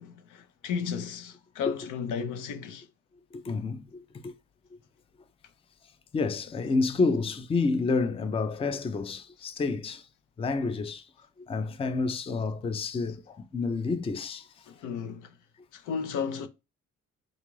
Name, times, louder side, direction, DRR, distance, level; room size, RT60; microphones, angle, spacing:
voice 1, 0.0-2.9 14.7-15.3 15.7-16.5, left 7 dB, 85° left, 0.6 m, -34 dB
voice 2, 3.3-4.3 6.1-10.1 10.4-11.1 11.5-14.5, left 4 dB, 20° left, 0.4 m, -29 dB
3.7 x 2.4 x 3.1 m
cardioid pair, 90°, 30 cm